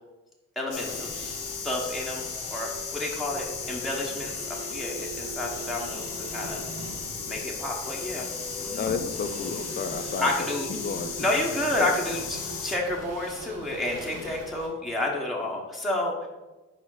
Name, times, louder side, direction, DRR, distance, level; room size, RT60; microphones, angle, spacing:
voice 1, 0.6-1.4 1.6-6.6 7.2-8.3 8.6-8.8 10.2-10.7 11.2-16.3, left 1 dB, ahead, -3 dB, 1.0 m, -30 dB
sound 1, 0.7-12.8, left 6 dB, 85° left, 0.9 m, -36 dB
sound 2, 0.7-14.7, right 2 dB, 55° right, 1.2 m, -44 dB
sound 3, 3.3-14.3, right 3 dB, 70° right, 1.4 m, -44 dB
voice 2, 8.7-11.4 11.8-12.0 14.1-14.3, left 5 dB, 35° left, 9 dB, 0.6 m, -33 dB
4.9 x 4.1 x 4.8 m, 1.1 s
cardioid pair, 90°, 30 cm